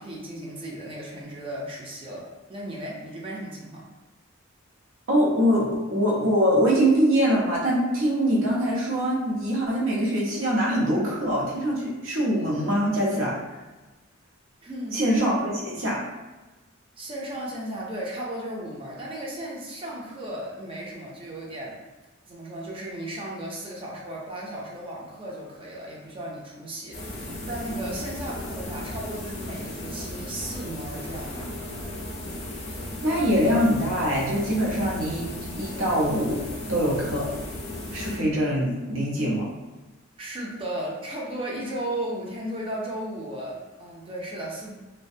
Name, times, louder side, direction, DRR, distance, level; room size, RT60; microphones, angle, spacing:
voice 1, 0.0-3.8 14.6-15.0 17.0-21.8 22.3-31.5 40.2-44.7, right 1 dB, 25° right, -3 dB, 0.5 m, -35 dB
voice 2, 5.1-13.4 14.9-16.0 33.0-35.3 35.6-36.4 36.7-37.3 37.9-39.5, equal, 70° right, -4 dB, 0.7 m, -23 dB
sound 1, 26.9-38.6, left 1 dB, 35° left, 0.5 m, -36 dB
2.4 x 2.2 x 2.6 m, 1.1 s
head